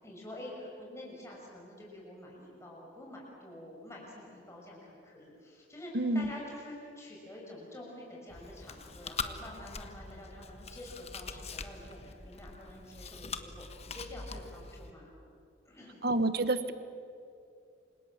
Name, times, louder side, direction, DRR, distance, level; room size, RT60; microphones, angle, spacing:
voice 1, 0.0-15.1 15.7-16.0, left 1 dB, 15° left, -3 dB, 6.0 m, -47 dB
voice 2, 5.9-6.3 16.0-16.7, right 2 dB, 50° right, 11 dB, 1.4 m, -28 dB
Chewing mastication, 8.3-14.9, left 4 dB, 30° left, 1.3 m, -43 dB
29.0 x 26.5 x 7.4 m, 2.6 s
head